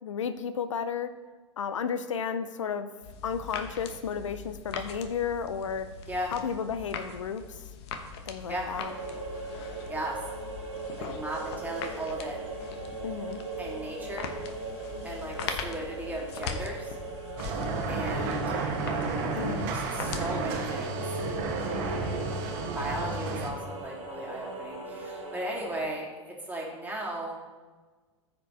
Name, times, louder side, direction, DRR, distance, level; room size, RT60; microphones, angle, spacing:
voice 1, 0.0-1.1 1.6-2.9 3.2-5.9 6.3-7.6 8.3-8.9 13.0-13.4 19.4-19.7, left 7 dB, 80° left, 11 dB, 0.5 m, -33 dB
sound 1, 3.0-20.3, left 6 dB, 60° left, 1.1 m, -41 dB
sound 2, 8.7-25.8, right 3 dB, 85° right, 1.9 m, -39 dB
voice 2, 9.9-10.2 11.0-12.4 13.6-14.3 15.0-17.0 17.9-18.5 19.7-21.0 22.7-27.4, right 1 dB, 10° right, -3 dB, 2.7 m, -36 dB
sound 3, 17.4-23.5, right 3 dB, 55° right, 1.6 m, -32 dB
14.5 x 5.1 x 3.3 m, 1.4 s
hypercardioid pair, 90°, 16 cm